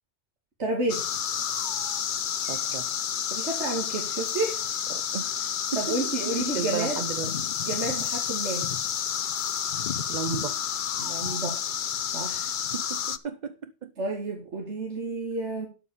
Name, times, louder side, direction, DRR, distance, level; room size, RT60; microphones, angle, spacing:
voice 1, 0.6-1.0 3.3-4.7 5.7-7.0 7.6-8.7 11.0-11.6 12.1-12.5 14.0-15.7, right 2 dB, 80° right, 2.5 m, -30 dB
sound 1, 0.9-13.2, left 8 dB, 50° left, 0.7 m, -30 dB
voice 2, 2.4-2.8 4.9-6.0 6.3-7.3 7.9-8.0 10.1-10.6 12.7-13.9, right 6 dB, 50° right, 0.7 m, -34 dB
12.5 x 5.1 x 7.0 m
omnidirectional pair, 1.1 m